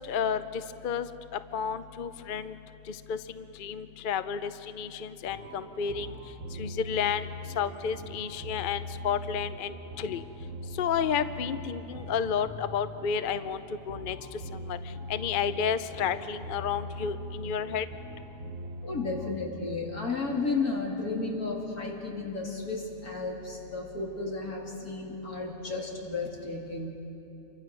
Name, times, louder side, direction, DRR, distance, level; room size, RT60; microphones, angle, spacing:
voice 1, 0.1-1.1 1.5-2.5 3.1-6.2 6.6-7.3 7.6-10.2 10.8-13.6 13.9-14.2 14.7-14.8 15.1-17.9, left 7 dB, 50° left, 12 dB, 0.7 m, -31 dB
sound 1, 5.2-19.3, left 1 dB, 65° right, 1.7 m, -41 dB
voice 2, 18.8-26.9, left 3 dB, 85° left, -2 dB, 3.7 m, -33 dB
28.0 x 24.0 x 6.2 m, 3.0 s
omnidirectional pair, 1.5 m